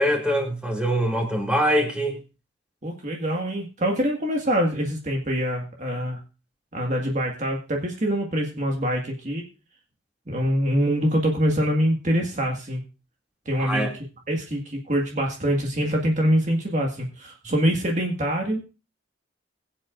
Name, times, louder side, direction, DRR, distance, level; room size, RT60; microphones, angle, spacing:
voice 1, 0.0-2.2 13.6-13.9, equal, 5° right, 2.5 m, -23 dB
voice 2, 2.8-6.2 6.7-9.5 10.3-12.8 13.5-13.9 14.3-18.6, equal, 35° right, 1.8 m, -24 dB
22.0 x 7.9 x 2.5 m
head